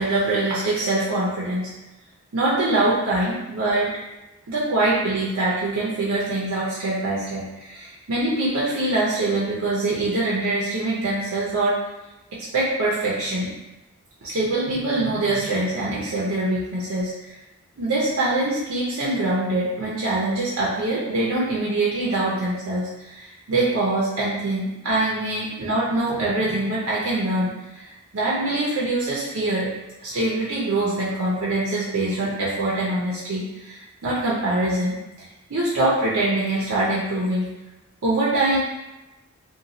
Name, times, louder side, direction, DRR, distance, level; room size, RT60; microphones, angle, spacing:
voice 1, 0.0-1.7 2.3-3.9 4.5-11.8 12.5-13.5 14.2-17.3 17.8-29.7 30.0-35.0 35.5-37.5 38.0-38.6, right 2 dB, 75° right, -6 dB, 0.6 m, -24 dB
2.9 x 2.2 x 2.6 m, 1.0 s
head